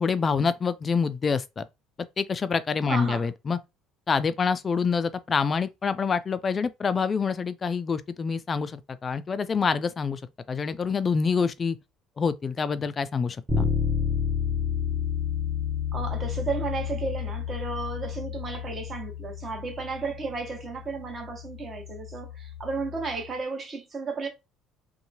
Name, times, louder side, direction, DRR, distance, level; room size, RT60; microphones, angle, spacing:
voice 1, 0.0-1.7 2.2-3.6 4.1-10.2 10.5-11.8 12.2-13.7, left 5 dB, 35° left, 0.3 m, -26 dB
voice 2, 2.9-3.3 15.9-24.3, right 4 dB, 35° right, 1.1 m, -33 dB
Bass guitar, 13.5-23.3, left 7 dB, 10° right, 0.7 m, -31 dB
2.8 x 2.2 x 2.7 m
supercardioid pair, 85°, 0 cm